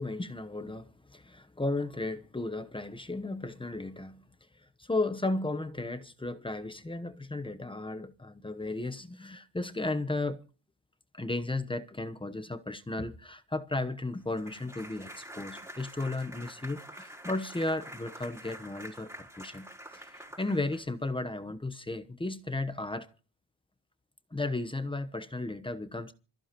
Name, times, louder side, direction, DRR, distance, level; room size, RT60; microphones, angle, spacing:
voice 1, 0.0-4.2 4.6-10.4 11.1-23.1 24.3-26.1, left 2 dB, 10° left, 1.0 m, -34 dB
sound 1, 14.3-21.1, equal, 5° right, 5.1 m, -47 dB
26.5 x 14.5 x 3.0 m
cardioid pair, 105°, 41 cm